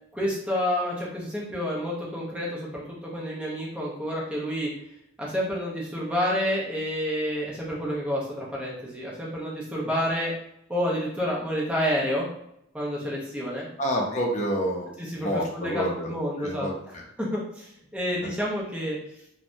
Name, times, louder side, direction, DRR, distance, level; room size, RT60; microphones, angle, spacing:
voice 1, 0.1-4.7 5.2-10.3 10.7-12.3 12.7-13.7 15.0-16.7 17.2-19.0, equal, 5° right, -5 dB, 0.7 m, -29 dB
voice 2, 13.8-16.7, equal, 35° left, 0 dB, 0.6 m, -29 dB
3.2 x 2.2 x 2.5 m, 0.77 s
head